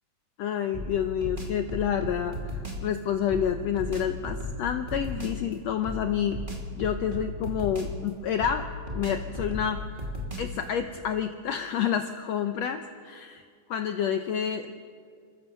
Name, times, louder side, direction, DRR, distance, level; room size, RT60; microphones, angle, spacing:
voice 1, 0.4-6.4 6.8-8.7 8.9-10.1 10.4-13.4 13.7-14.8, left 8 dB, 80° left, 7 dB, 1.5 m, -29 dB
sound 1, 0.7-2.9 3.3-5.4 5.8-8.1 8.4-10.6, left 1 dB, 15° right, 2.1 m, -35 dB
30.0 x 14.5 x 6.8 m, 2.2 s
omnidirectional pair, 3.9 m